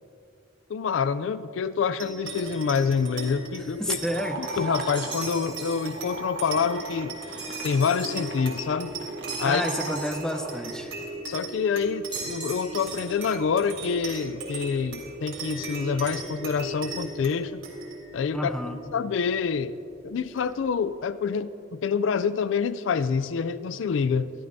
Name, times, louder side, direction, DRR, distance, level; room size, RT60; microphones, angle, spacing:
voice 1, 0.7-4.0 4.4-9.0 9.4-9.6 11.3-17.6 18.1-18.5 18.9-19.8 20.0-24.3, left 6 dB, 70° left, 15 dB, 0.4 m, -27 dB
sound 1, 2.0-20.8, right 2 dB, 85° right, 3.2 m, -38 dB
voice 2, 3.8-4.6 9.4-10.9 18.3-18.8, equal, 5° left, 6 dB, 0.6 m, -30 dB
sound 2, 4.0-10.6, right 2 dB, 60° right, 1.0 m, -38 dB
sound 3, 5.0-5.9 7.4-8.3 9.3-10.5 12.1-13.1, right 3 dB, 25° right, 3.5 m, -38 dB
22.5 x 13.0 x 2.7 m, 2.7 s
head